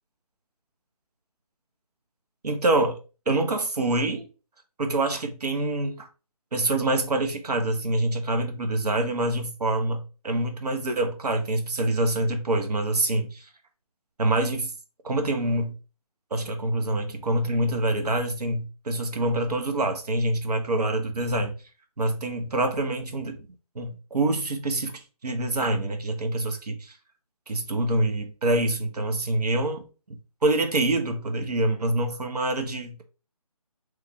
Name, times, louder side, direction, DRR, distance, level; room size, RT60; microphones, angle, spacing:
voice 1, 2.4-3.0 3.3-4.3 4.8-6.1 6.5-13.5 14.2-14.7 15.0-15.8 16.3-21.5 22.0-23.4 23.7-27.0 27.5-29.8 30.4-33.0, right 2 dB, 85° right, 0.8 m, -26 dB
3.1 x 2.3 x 3.5 m
figure-of-eight pair, 160°, 20 cm